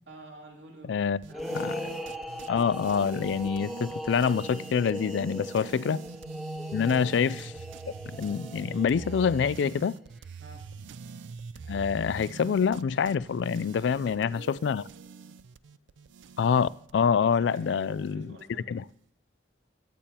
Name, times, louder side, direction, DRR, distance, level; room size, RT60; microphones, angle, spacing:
voice 1, 0.1-1.7 5.6-5.7 6.8-7.1 10.4-10.7 13.8-14.5 17.0-18.8, right 2 dB, 75° right, 2.7 m, -49 dB
voice 2, 0.9-1.2 1.5-1.8 2.5-6.0 6.7-7.5 8.2-9.9 11.7-14.8 16.4-18.2 18.7-18.8, left 6 dB, 80° left, 0.3 m, -26 dB
sound 1, 1.2-18.4, right 4 dB, 90° right, 0.4 m, -44 dB
sound 2, 1.3-9.9, equal, ahead, 0.6 m, -39 dB
22.0 x 8.5 x 2.9 m
head